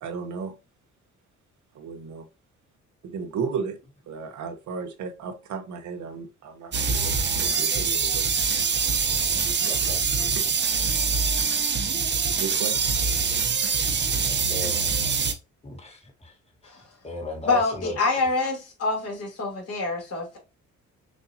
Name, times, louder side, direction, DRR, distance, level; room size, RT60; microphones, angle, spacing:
voice 1, 0.0-0.5 1.7-2.3 3.0-3.8 4.1-8.3 9.6-9.9 10.2-10.6 10.9-11.0 12.3-12.9, right 5 dB, 75° right, 1.1 m, -34 dB
sound 1, 6.7-15.3, right 5 dB, 35° right, 0.9 m, -24 dB
voice 2, 9.7-10.0 14.5-15.2 15.6-16.3 17.0-18.3, left 2 dB, 20° left, 1.6 m, -36 dB
voice 3, 17.5-20.4, left 3 dB, 55° left, 2.5 m, -26 dB
6.2 x 2.7 x 2.8 m
cardioid pair, 90°, 30 cm